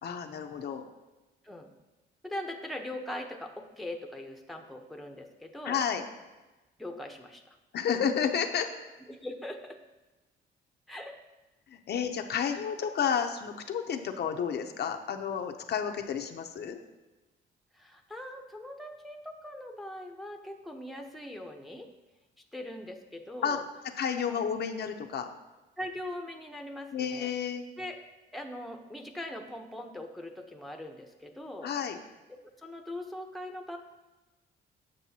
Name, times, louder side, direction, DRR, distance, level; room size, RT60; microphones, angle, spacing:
voice 1, 0.0-0.8 5.6-6.0 7.7-8.7 11.7-16.8 23.4-23.6 24.0-25.3 26.9-27.7 31.6-32.0, left 7 dB, 55° left, 5 dB, 0.6 m, -31 dB
voice 2, 2.2-5.8 6.8-7.6 9.1-9.8 10.9-11.2 12.5-12.6 17.7-21.9 22.5-23.6 24.2-24.4 25.8-27.3 27.8-28.0 28.3-31.7 32.6-33.8, left 1 dB, ahead, 4 dB, 0.7 m, -41 dB
7.5 x 6.7 x 2.8 m, 1.1 s
cardioid pair, 90°, 20 cm